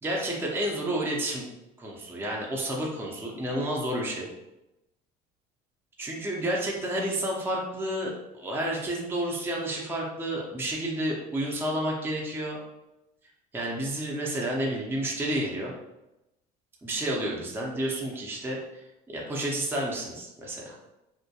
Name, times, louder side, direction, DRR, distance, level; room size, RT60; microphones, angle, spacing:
voice 1, 0.0-1.4 1.8-4.3 6.0-12.6 13.5-15.7 16.8-18.6 19.1-20.7, right 1 dB, 10° right, -3 dB, 0.5 m, -30 dB
2.2 x 2.1 x 2.7 m, 0.94 s
supercardioid pair, 100°, 20 cm